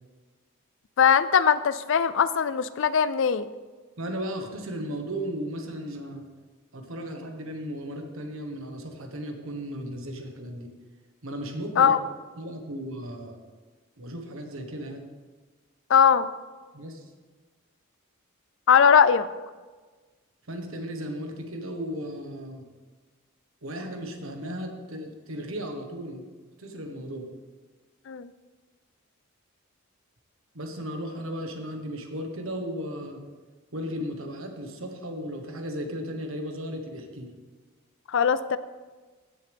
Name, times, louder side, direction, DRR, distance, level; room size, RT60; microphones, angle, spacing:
voice 1, 1.0-3.5 11.8-12.0 15.9-16.3 18.7-19.3 28.1-28.3 38.1-38.6, left 7 dB, 60° left, 15 dB, 0.4 m, -20 dB
voice 2, 4.0-6.2 6.7-10.7 11.2-11.9 12.4-13.4 14.0-15.1 16.7-17.0 20.5-22.6 23.6-26.3 26.6-27.3 30.5-33.2 33.7-37.3, equal, 70° right, 4 dB, 1.4 m, -35 dB
15.5 x 6.7 x 3.5 m, 1.4 s
head